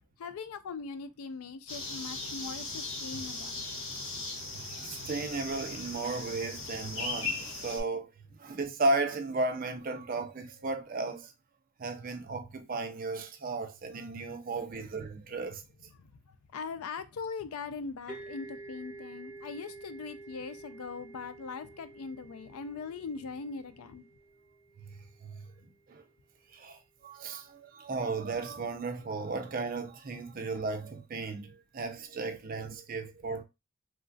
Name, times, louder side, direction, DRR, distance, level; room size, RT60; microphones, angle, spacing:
voice 1, 0.2-3.6 16.0-24.1, left 5 dB, 80° left, 0.4 m, -41 dB
sound 1, 1.7-7.8, left 3 dB, 65° left, 0.8 m, -38 dB
voice 2, 4.5-8.1 8.4-11.3 11.8-15.6 24.8-25.5 25.9-26.0 26.5-33.4, right 3 dB, 40° right, 0.4 m, -35 dB
sound 2, 18.1-25.6, right 2 dB, 5° left, 1.1 m, -49 dB
3.1 x 2.4 x 2.5 m
head